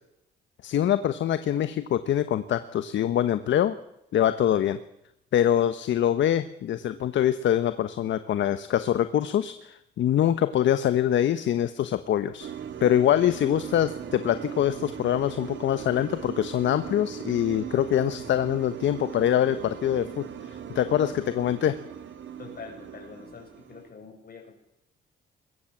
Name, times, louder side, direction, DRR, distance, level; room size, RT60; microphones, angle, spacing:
voice 1, 0.6-3.8 4.1-4.8 5.3-12.5 12.8-21.8, left 10 dB, 70° left, 12 dB, 1.2 m, -24 dB
sound 1, 12.4-23.9, right 9 dB, 70° right, 2.8 m, -39 dB
voice 2, 22.4-24.5, left 5 dB, 50° left, 3 dB, 7.5 m, -44 dB
22.0 x 20.0 x 7.4 m, 0.81 s
cardioid pair, 90°, 20 cm